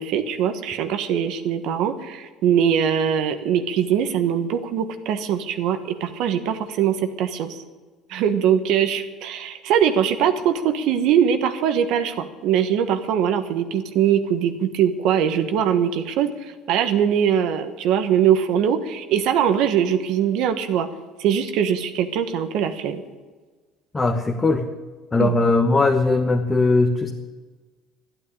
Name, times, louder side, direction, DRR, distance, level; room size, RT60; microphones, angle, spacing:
voice 1, 0.0-7.6 8.1-20.9 21.2-23.0 25.2-25.3, right 8 dB, 70° right, 8 dB, 1.3 m, -22 dB
voice 2, 23.9-24.7 25.1-27.1, left 3 dB, 20° left, 3 dB, 1.2 m, -19 dB
13.0 x 9.1 x 9.8 m, 1.4 s
cardioid pair, 120°, 0 cm